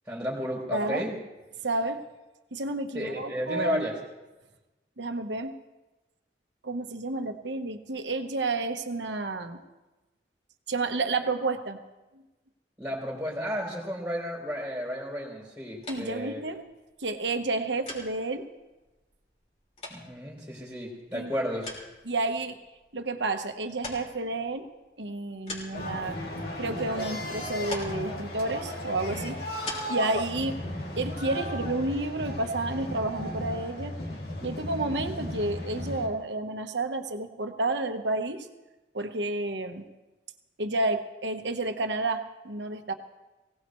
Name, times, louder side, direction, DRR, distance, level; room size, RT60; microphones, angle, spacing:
voice 1, 0.1-1.1 2.9-3.9 12.8-16.4 19.9-21.7, equal, 5° right, -2 dB, 3.6 m, -33 dB
voice 2, 0.7-1.1 1.6-2.0 2.5-3.9 5.0-5.5 6.6-9.6 10.7-11.8 15.9-16.6 17.0-18.5 21.1-21.3 22.0-22.6 22.9-24.7 25.0-26.2 26.6-29.4 29.9-30.6 31.0-33.9 34.4-38.5 38.9-39.8 40.6-42.9, right 2 dB, 85° right, 6 dB, 1.2 m, -30 dB
sound 1, 15.8-31.4, left 2 dB, 35° left, 3.6 m, -46 dB
sound 2, 25.7-36.1, left 1 dB, 55° left, 2.8 m, -35 dB
23.0 x 17.5 x 3.2 m, 1.1 s
head